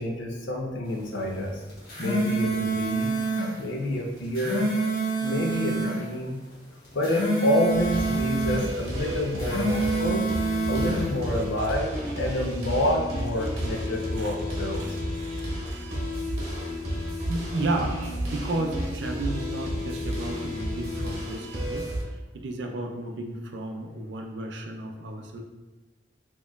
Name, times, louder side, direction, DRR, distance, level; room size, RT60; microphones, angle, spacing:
voice 1, 0.0-1.6 2.0-3.2 3.6-4.7 5.2-6.4 6.9-10.3 10.6-15.0, left 1 dB, 75° left, 0 dB, 0.6 m, -28 dB
sound 1, 1.7-3.5 4.2-6.0 6.8-8.6 9.3-11.0, right 3 dB, 50° left, 1.2 m, -27 dB
sound 2, 7.7-22.0, equal, 35° right, 0.9 m, -32 dB
voice 2, 14.8-16.3 17.3-21.9 22.3-25.4, right 2 dB, 70° right, 3 dB, 0.4 m, -33 dB
4.3 x 2.9 x 2.3 m, 1.2 s
head